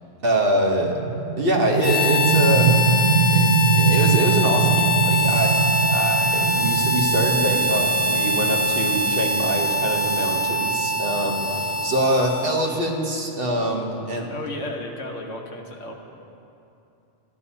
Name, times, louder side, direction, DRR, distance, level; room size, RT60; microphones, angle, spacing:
voice 1, 0.2-1.0 1.4-2.8 3.3-14.3, right 1 dB, 50° right, 0 dB, 1.1 m, -24 dB
sound 1, 0.8-12.3, right 6 dB, 90° right, 1.0 m, -23 dB
Harmonica, 1.8-12.9, left 1 dB, 45° left, 0.5 m, -23 dB
voice 2, 14.3-15.9, left 1 dB, 80° left, 2 dB, 1.3 m, -33 dB
13.0 x 11.0 x 2.7 m, 2.7 s
omnidirectional pair, 1.3 m